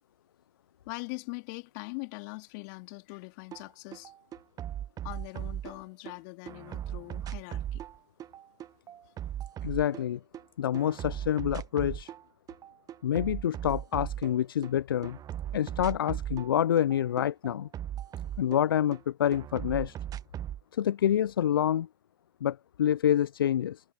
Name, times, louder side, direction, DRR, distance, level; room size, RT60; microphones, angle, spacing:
voice 1, 0.9-4.1 5.0-7.8, left 31 dB, 55° left, 3.6 m, -42 dB
sound 1, 3.5-3.6 3.9-6.1 6.5-10.4 10.7-12.2 12.5-14.7 15.0-19.0 19.3-20.6, right 11 dB, 30° right, 1.1 m, -38 dB
voice 2, 9.6-10.2 10.6-12.1 13.0-15.2 15.5-17.7 18.4-19.9 20.7-21.9 22.4-23.8, left 10 dB, 80° left, 0.4 m, -27 dB
hypercardioid pair, 90°, 12 cm